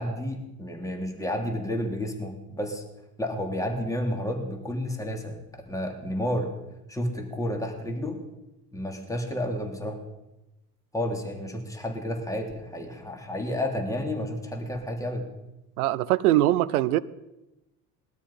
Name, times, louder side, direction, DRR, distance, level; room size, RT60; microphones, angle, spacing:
voice 1, 0.0-2.8 3.2-6.5 6.9-8.2 8.7-10.0 10.9-15.3, left 1 dB, 5° left, 2 dB, 3.2 m, -31 dB
voice 2, 15.8-17.0, right 14 dB, 75° right, 17 dB, 0.8 m, -22 dB
20.0 x 12.5 x 5.7 m, 0.97 s
hypercardioid pair, 65°, 45 cm